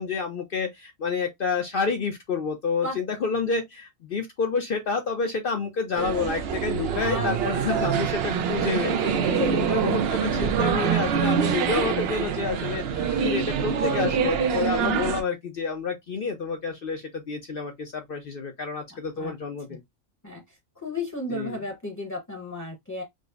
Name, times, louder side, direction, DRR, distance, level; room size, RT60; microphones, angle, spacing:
voice 1, 0.0-9.3 9.7-19.8 21.3-21.6, left 5 dB, 55° left, 0.6 m, -29 dB
sound 1, 6.0-15.2, right 7 dB, 65° right, 0.7 m, -25 dB
voice 2, 7.0-7.4 7.7-8.2 9.2-9.9 14.8-15.0 18.9-19.3 19.7-19.8 20.2-23.0, left 2 dB, 15° left, 0.7 m, -33 dB
5.0 x 2.0 x 2.4 m
omnidirectional pair, 1.4 m